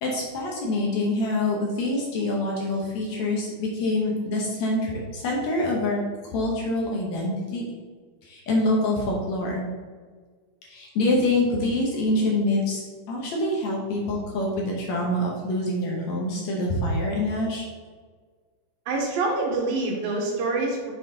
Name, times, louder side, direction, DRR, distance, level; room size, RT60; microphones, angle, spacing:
voice 1, 0.0-6.0 6.3-7.6 8.2-9.7 10.7-17.7, left 1 dB, 65° left, -2 dB, 2.0 m, -25 dB
voice 2, 18.9-20.9, right 3 dB, 90° right, -1 dB, 3.0 m, -26 dB
7.4 x 4.2 x 3.9 m, 1.5 s
omnidirectional pair, 4.0 m